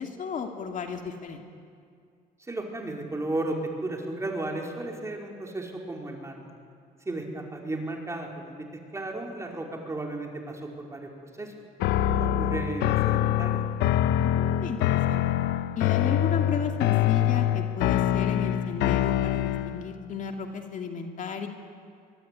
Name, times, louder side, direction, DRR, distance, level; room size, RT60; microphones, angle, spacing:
voice 1, 0.0-1.4 14.2-15.2 15.8-21.5, left 6 dB, 50° left, 4 dB, 2.5 m, -34 dB
voice 2, 2.4-6.5 7.0-11.5 12.1-13.6, right 2 dB, 15° right, 1 dB, 4.8 m, -34 dB
sound 1, 11.8-19.9, left 11 dB, 85° left, 1.0 m, -25 dB
24.0 x 22.5 x 9.9 m, 2.3 s
cardioid pair, 110°, 17 cm